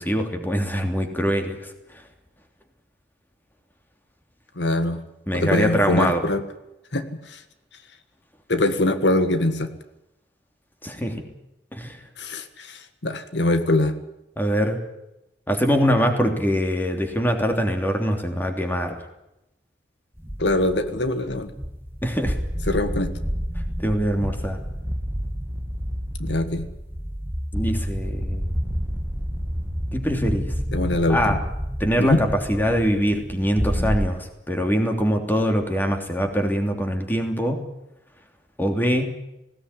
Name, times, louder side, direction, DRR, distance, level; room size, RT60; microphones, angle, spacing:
voice 1, 0.0-1.7 5.3-6.3 10.8-11.3 11.7-12.0 14.4-14.8 15.5-19.0 22.0-22.4 23.8-24.6 27.5-28.5 29.9-30.5 31.1-31.4 31.8-37.6 38.6-39.1, equal, 10° left, 4 dB, 3.0 m, -23 dB
voice 2, 4.6-5.0 5.3-6.4 6.9-7.4 8.5-9.7 12.2-13.9 20.4-21.5 22.7-23.1 26.2-26.7 30.7-31.4 32.0-32.2, left 2 dB, 90° left, 9 dB, 1.7 m, -23 dB
sound 1, 20.2-34.1, equal, 15° right, 1.6 m, -29 dB
19.0 x 17.5 x 9.9 m, 0.90 s
head